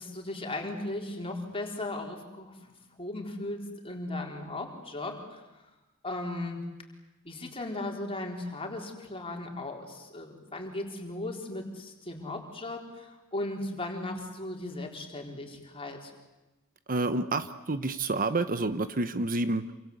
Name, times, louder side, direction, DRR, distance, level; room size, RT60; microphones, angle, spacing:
voice 1, 0.0-5.4 6.0-6.6 7.2-16.1, left 2 dB, 25° left, 2 dB, 4.3 m, -37 dB
voice 2, 16.9-19.7, right 2 dB, 40° right, 11 dB, 1.0 m, -29 dB
27.5 x 25.5 x 8.1 m, 1.1 s
head